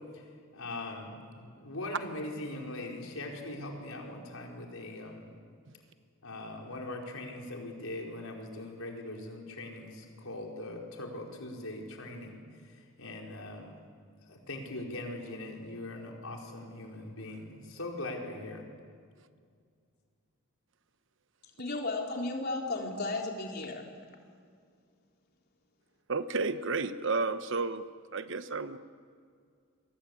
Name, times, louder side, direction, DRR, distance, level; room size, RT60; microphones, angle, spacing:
voice 1, 0.5-5.3 6.2-12.4 13.0-13.8 14.3-18.6, left 2 dB, 75° left, 0 dB, 4.9 m, -41 dB
voice 2, 21.6-23.9, left 2 dB, 45° left, 1 dB, 3.7 m, -34 dB
voice 3, 26.1-27.9 28.1-28.8, right 3 dB, 60° right, 11 dB, 1.1 m, -31 dB
29.5 x 23.0 x 8.6 m, 2.2 s
head